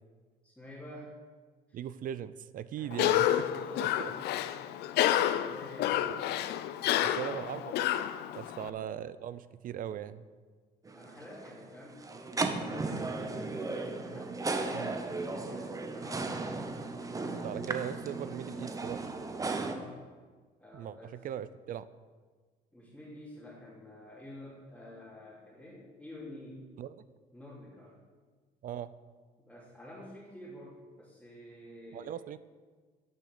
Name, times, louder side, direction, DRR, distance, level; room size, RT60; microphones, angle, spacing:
voice 1, 0.4-1.2 1.7-1.8 2.8-4.9 5.5-6.4 6.8-7.6 8.5-8.9 10.9-16.9 19.5-20.0 20.6-21.2 22.7-26.6 27.3-28.0 29.4-32.2, left 1 dB, 5° left, -8 dB, 3.0 m, -49 dB
voice 2, 1.7-3.3 3.8-4.1 7.0-8.1 8.3-10.3 14.7-14.9 17.3-19.1 20.7-21.9 26.8-27.0 28.6-28.9 31.9-32.4, right 10 dB, 55° right, 15 dB, 0.5 m, -39 dB
Cough, 2.9-8.7, left 12 dB, 75° left, 0.5 m, -30 dB
sound 1, 10.9-19.7, right 3 dB, 20° right, 0.9 m, -36 dB
10.5 x 6.3 x 6.7 m, 1.4 s
cardioid pair, 110°, 17 cm